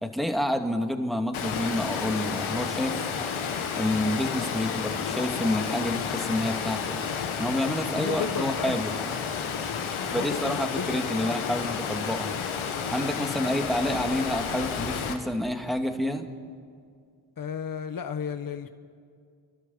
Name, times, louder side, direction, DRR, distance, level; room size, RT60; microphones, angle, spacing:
voice 1, 0.0-3.1 3.8-7.0 7.4-8.9 10.1-12.4 12.9-16.3, left 1 dB, ahead, 5 dB, 2.4 m, -29 dB
Water, 1.3-15.1, left 6 dB, 75° left, 1.9 m, -31 dB
voice 2, 7.9-8.8 10.1-11.6 17.4-18.7, left 6 dB, 45° left, 9 dB, 1.3 m, -34 dB
29.5 x 12.0 x 8.5 m, 2.2 s
supercardioid pair, 45°, 49 cm